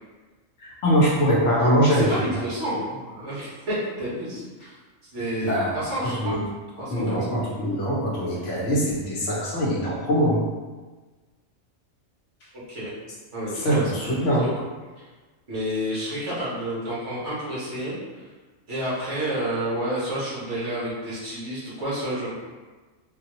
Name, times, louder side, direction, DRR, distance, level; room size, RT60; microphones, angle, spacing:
voice 1, 0.6-2.2 5.4-6.4 6.9-10.4 13.6-14.5, equal, 65° left, -5 dB, 1.1 m, -23 dB
voice 2, 1.8-4.7 5.1-6.4 6.8-7.1 12.7-12.9 13.3-14.5 15.5-18.2 18.7-22.3, right 1 dB, 60° right, -8 dB, 1.4 m, -30 dB
3.9 x 2.2 x 2.9 m, 1.3 s
omnidirectional pair, 1.4 m